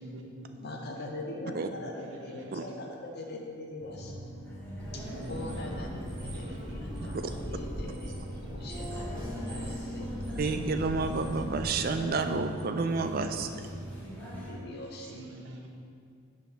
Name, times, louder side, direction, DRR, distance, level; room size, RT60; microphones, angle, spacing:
voice 1, 0.0-0.5 0.8-0.9 1.3-1.4 1.9-2.6 5.0-6.6 6.9-7.0 8.0-8.1 15.0-15.7, right 1 dB, 60° right, 1 dB, 0.9 m, -46 dB
voice 2, 0.5-4.1 4.9-10.1 14.3-15.2, left 1 dB, 50° left, 0 dB, 0.8 m, -42 dB
sound 1, 3.8-14.5, right 1 dB, 10° left, 1.3 m, -42 dB
sound 2, 4.8-11.8, equal, 20° right, 0.8 m, -40 dB
voice 3, 10.4-13.5, right 4 dB, 45° right, 7 dB, 0.4 m, -30 dB
7.1 x 3.6 x 6.0 m, 2.3 s
head